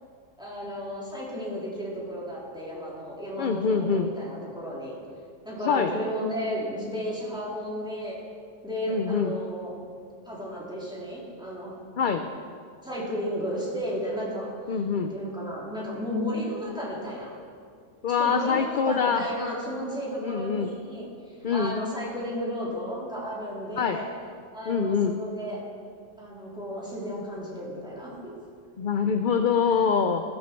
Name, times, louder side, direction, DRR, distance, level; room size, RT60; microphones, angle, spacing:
voice 1, 0.4-5.0 5.4-8.3 8.6-9.7 10.3-11.7 12.8-17.3 18.1-21.1 21.5-24.1 24.5-25.6 26.2-28.3 29.7-29.9, equal, 5° right, -6 dB, 3.5 m, -33 dB
voice 2, 3.4-4.1 5.6-5.9 8.9-9.4 12.0-12.2 14.7-15.1 18.0-19.2 20.2-20.7 21.4-21.8 23.8-24.0 24.7-25.2 28.8-30.2, left 6 dB, 50° left, 7 dB, 0.7 m, -24 dB
15.5 x 13.5 x 4.5 m, 2.2 s
omnidirectional pair, 1.3 m